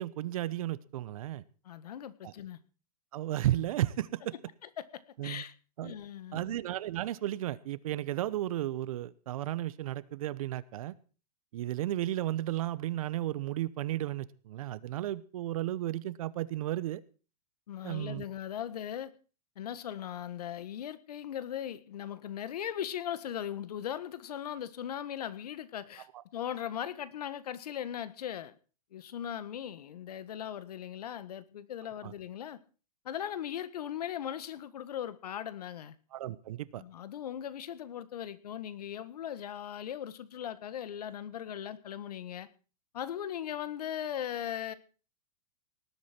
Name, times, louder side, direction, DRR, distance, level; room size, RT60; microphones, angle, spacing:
voice 1, 0.0-1.4 2.2-2.3 3.1-4.3 5.2-5.4 5.8-5.9 6.3-10.9 11.5-17.0 17.8-18.2 32.0-32.1 36.1-36.8, right 14 dB, 60° right, 19 dB, 1.0 m, -34 dB
voice 2, 1.6-2.6 4.6-5.5 5.8-6.5 17.7-19.1 19.5-26.1 26.3-28.5 28.9-32.6 33.0-35.9 36.8-42.5 42.9-44.7, left 10 dB, 75° left, 16 dB, 1.6 m, -39 dB
19.0 x 8.3 x 6.1 m, 0.38 s
hypercardioid pair, 150°, 20 cm